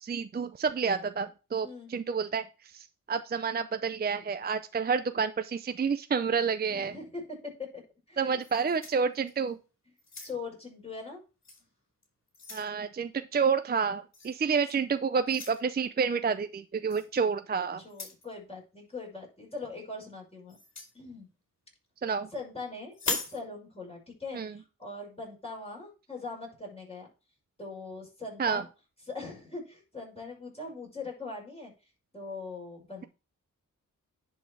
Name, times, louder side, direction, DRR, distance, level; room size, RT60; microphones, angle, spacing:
voice 1, 0.0-2.5 2.7-6.9 8.2-9.6 12.5-17.8 22.0-22.3 24.3-24.5 28.4-28.6, right 5 dB, 30° right, 10 dB, 0.5 m, -29 dB
voice 2, 6.7-7.7 8.1-8.7 10.2-11.2 17.8-20.6 20.9-21.3 22.3-27.1 27.6-28.7 29.1-31.7 32.1-33.1, left 3 dB, 20° left, -1 dB, 5.6 m, -41 dB
sound 1, 8.4-9.5 10.0-10.6 11.4-11.6 12.0-12.7 14.1-14.4 15.3-15.6 16.9-17.1 17.8-18.3 20.5-20.9 22.9-23.4, left 3 dB, 55° left, 2.8 m, -38 dB
10.5 x 4.3 x 4.6 m, 0.32 s
cardioid pair, 75°, 33 cm